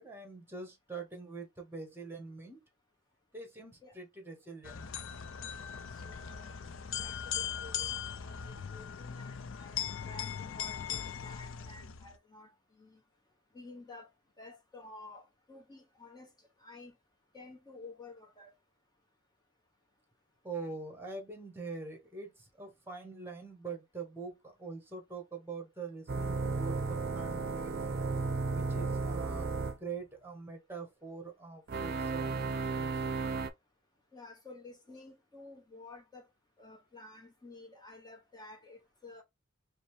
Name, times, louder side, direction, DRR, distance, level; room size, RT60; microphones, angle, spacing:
voice 1, 0.0-2.6 3.3-4.9 20.4-27.7 28.5-33.0, right 4 dB, 10° right, 1.1 m, -44 dB
sound 1, 4.6-12.2, left 8 dB, 70° left, 0.4 m, -39 dB
voice 2, 5.6-6.5 7.0-13.0 13.5-14.1 14.4-16.3 16.6-17.0 17.3-18.5 34.1-36.3 36.6-39.2, left 2 dB, 20° left, 0.8 m, -52 dB
sound 2, 26.1-29.8 31.7-33.5, right 4 dB, 50° right, 0.5 m, -34 dB
5.0 x 2.1 x 3.1 m
head